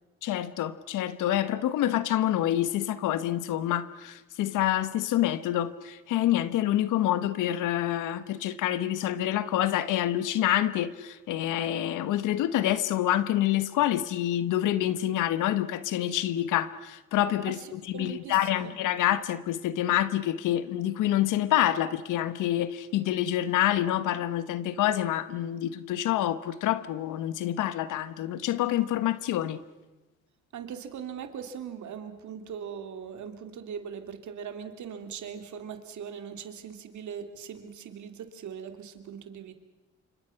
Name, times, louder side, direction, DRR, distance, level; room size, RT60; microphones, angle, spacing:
voice 1, 0.2-29.6, left 12 dB, 90° left, 1.3 m, -27 dB
voice 2, 17.5-18.7 30.5-39.5, right 7 dB, 70° right, 3.0 m, -40 dB
28.0 x 25.5 x 5.9 m
cardioid pair, 90°, 30 cm